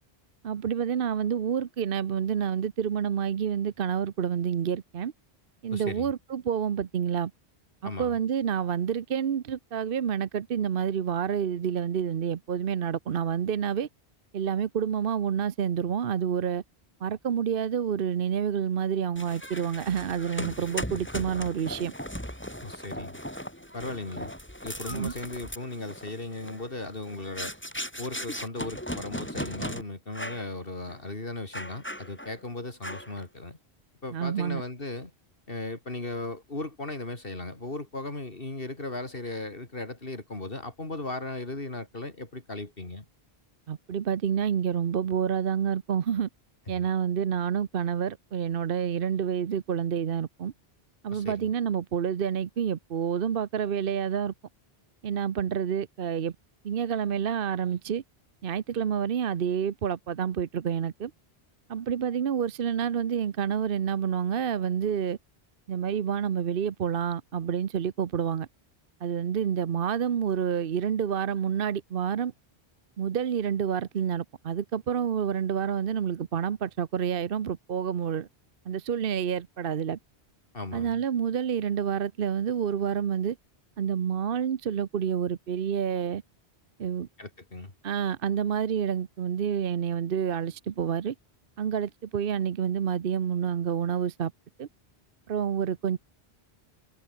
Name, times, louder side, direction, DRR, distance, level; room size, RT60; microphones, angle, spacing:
voice 1, 0.4-5.1 5.6-7.3 7.8-13.9 14.3-16.6 17.0-21.9 24.9-25.1 34.1-34.6 43.7-46.3 46.7-50.5 51.0-54.3 55.0-56.3 56.6-58.0 58.4-61.1 61.7-65.2 65.7-68.5 69.0-72.3 73.0-78.3 78.7-80.0 80.7-83.4 83.8-86.2 86.8-87.1 87.8-91.1 91.6-94.3 94.6-94.7 95.3-96.0, right 8 dB, 60° right, 1.0 m, -28 dB
voice 2, 5.7-6.1 7.8-8.2 22.6-23.2 23.7-24.3 24.6-27.5 28.0-33.6 34.0-35.1 35.5-43.1 46.8-46.9 51.1-51.5 80.5-80.9 87.2-87.7, left 2 dB, 60° left, 3.5 m, -37 dB
sound 1, 19.2-29.8 30.1-30.5 30.9-31.0 31.5-32.4 32.8-33.2, equal, 10° left, 7.4 m, -38 dB
omnidirectional pair, 1.1 m